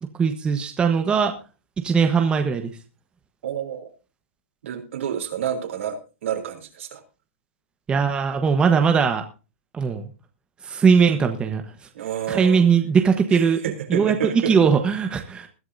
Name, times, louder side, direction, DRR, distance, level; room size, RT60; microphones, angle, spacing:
voice 1, 0.2-1.3 1.8-2.7 7.9-9.2 9.7-10.1 10.6-11.6 12.3-13.6 13.9-15.5, right 6 dB, 15° right, 5 dB, 1.2 m, -20 dB
voice 2, 3.4-3.9 4.6-7.0 11.9-12.6 13.3-14.6, right 9 dB, 70° right, 4 dB, 3.5 m, -29 dB
20.5 x 11.5 x 2.7 m, 0.31 s
hypercardioid pair, 150°, 7 cm